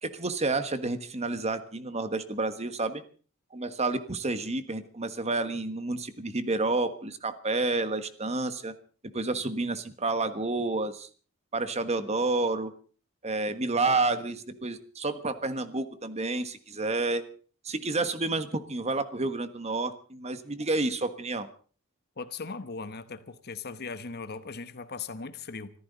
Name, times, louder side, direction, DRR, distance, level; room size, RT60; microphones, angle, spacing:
voice 1, 0.0-3.0 3.5-8.7 9.1-11.1 11.5-12.7 13.2-17.2 17.6-21.5, right 3 dB, 30° right, 1.4 m, -30 dB
voice 2, 22.2-25.7, left 4 dB, 50° left, 1.1 m, -38 dB
25.5 x 14.0 x 4.0 m
head